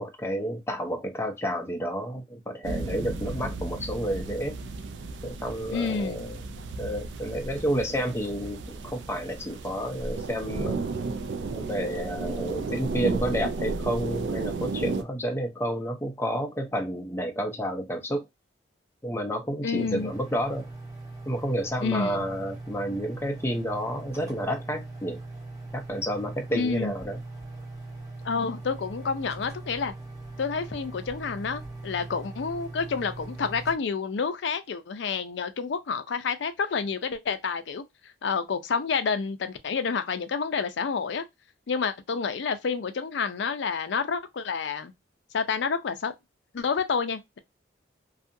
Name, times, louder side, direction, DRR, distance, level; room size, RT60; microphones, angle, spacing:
voice 1, 0.0-4.6 5.2-6.4 6.8-10.8 11.5-18.2 19.0-20.7 21.3-25.2 25.7-27.2, equal, 15° left, 0.5 m, -30 dB
sound 1, 2.6-15.0, right 3 dB, 70° right, 0.4 m, -33 dB
voice 2, 5.7-6.2 19.6-20.1 21.8-22.2 26.5-26.9 28.2-29.9 30.4-41.2 41.7-44.9 45.3-46.1 46.5-47.4, left 5 dB, 70° left, 0.4 m, -29 dB
sound 2, 19.8-33.8, right 2 dB, 20° right, 0.7 m, -41 dB
2.7 x 2.4 x 2.5 m
head